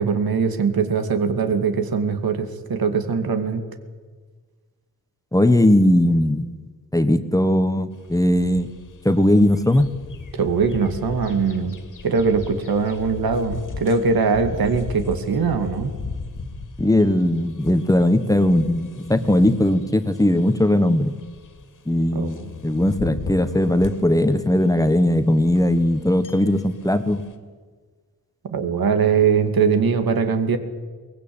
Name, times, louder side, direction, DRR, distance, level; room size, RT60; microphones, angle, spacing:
voice 1, 0.0-3.6 10.3-11.8 12.0-15.9 22.1-22.5 28.5-30.6, right 5 dB, 80° right, 7 dB, 2.4 m, -21 dB
voice 2, 5.3-6.4 6.9-8.7 9.0-10.0 16.8-21.1 21.9-27.2, left 1 dB, 10° left, 10 dB, 1.2 m, -19 dB
sound 1, 7.9-27.4, left 4 dB, 60° left, 2.5 m, -38 dB
23.0 x 20.0 x 8.8 m, 1.5 s
wide cardioid pair, 130°, 35 cm